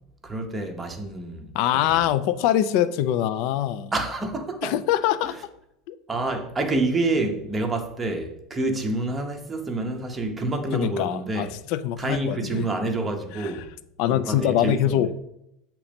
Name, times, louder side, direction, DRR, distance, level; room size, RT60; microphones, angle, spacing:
voice 1, 0.2-2.1 3.9-4.8 5.2-5.3 6.1-11.5 12.0-13.7 14.1-15.1, right 2 dB, 10° right, 0.7 m, -28 dB
voice 2, 1.5-3.9 4.6-5.4 5.9-6.0 10.7-12.7 13.4-13.5 14.0-15.2, left 11 dB, 55° left, 0.4 m, -24 dB
8.2 x 3.0 x 5.1 m
supercardioid pair, 170°, 0 cm